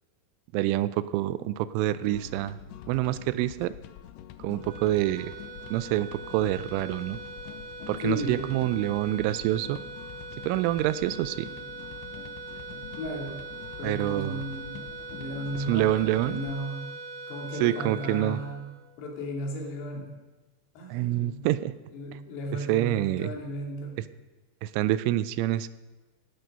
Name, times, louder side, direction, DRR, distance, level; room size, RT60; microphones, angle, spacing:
voice 1, 0.5-2.6 2.9-3.7 4.4-5.3 5.7-7.2 7.9-9.8 10.5-11.5 13.8-14.4 15.5-16.4 17.6-18.4 20.9-21.7 22.7-23.3 24.6-25.7, right 14 dB, 90° right, 15 dB, 3.1 m, -27 dB
sound 1, 2.0-16.6, left 11 dB, 80° left, 2.5 m, -45 dB
sound 2, 4.6-19.2, right 4 dB, 75° right, 4.0 m, -42 dB
voice 2, 8.0-8.6 11.4-11.5 12.5-13.4 13.8-14.7 15.1-16.9 17.3-18.6 19.0-20.1 20.8-21.6 21.9-24.0, left 1 dB, 60° left, -1 dB, 4.4 m, -35 dB
16.0 x 11.5 x 5.3 m, 1.2 s
omnidirectional pair, 5.4 m